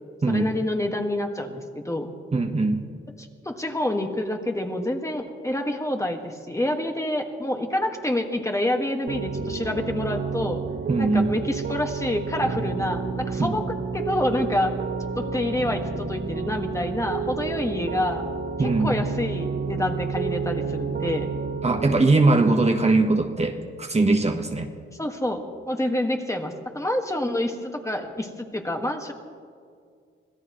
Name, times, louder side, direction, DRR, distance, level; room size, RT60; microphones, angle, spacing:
voice 1, 0.3-2.1 3.2-10.6 11.0-13.6 13.9-14.7 15.1-18.2 18.6-21.3 25.0-29.1, left 1 dB, 15° left, 3 dB, 1.8 m, -27 dB
voice 2, 2.3-2.9 10.9-11.3 13.4-13.5 18.6-19.0 21.6-24.7, right 3 dB, 30° right, 4 dB, 1.3 m, -21 dB
Piano, 9.1-22.0, right 5 dB, 55° right, 0.9 m, -30 dB
25.5 x 17.0 x 3.2 m, 2.1 s
cardioid pair, 80°, 21 cm